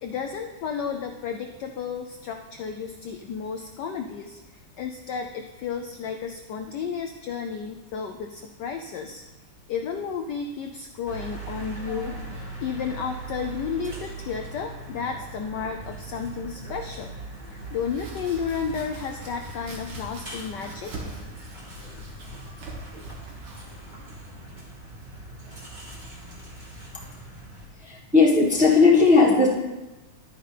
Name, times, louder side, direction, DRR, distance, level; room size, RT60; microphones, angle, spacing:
voice 1, 0.0-9.2 9.7-12.2 12.6-17.2 17.5-20.9, left 6 dB, 75° left, 4 dB, 1.0 m, -32 dB
sound 1, 11.1-27.7, right 2 dB, 20° right, 1.8 m, -40 dB
Domestic sounds home sounds, 17.6-25.4, right 2 dB, 80° right, 2.6 m, -44 dB
voice 2, 27.8-29.5, left 4 dB, 5° right, -3 dB, 0.9 m, -17 dB
11.0 x 9.4 x 3.3 m, 1.1 s
omnidirectional pair, 2.4 m